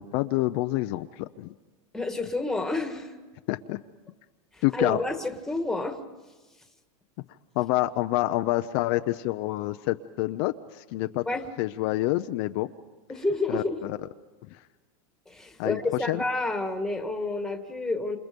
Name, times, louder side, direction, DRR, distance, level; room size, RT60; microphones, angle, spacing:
voice 1, 0.0-1.5 3.5-3.8 4.6-5.0 7.6-11.2 11.6-12.7 13.5-14.0 14.5-14.6 15.6-15.8 16.1-16.2, left 17 dB, 45° left, 8 dB, 0.7 m, -27 dB
voice 2, 1.9-3.1 4.5-6.0 11.3-11.5 13.1-13.8 15.3-18.2, left 2 dB, 5° left, 6 dB, 1.7 m, -29 dB
28.0 x 28.0 x 5.3 m, 1.2 s
supercardioid pair, 160°, 18 cm